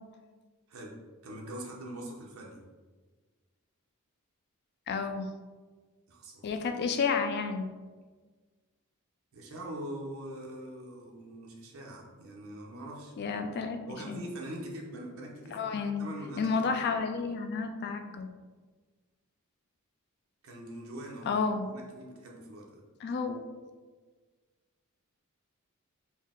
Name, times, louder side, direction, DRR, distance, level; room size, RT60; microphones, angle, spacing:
voice 1, 1.2-2.6 6.1-6.5 9.3-13.1 13.9-17.0 20.4-22.8, right 1 dB, 70° right, -2 dB, 0.7 m, -43 dB
voice 2, 4.9-5.3 6.4-7.7 13.2-13.8 14.1-14.2 15.5-16.1 16.4-18.3 21.3-21.7 23.0-23.5, left 5 dB, 50° left, 7 dB, 0.3 m, -31 dB
4.4 x 2.0 x 3.5 m, 1.4 s
head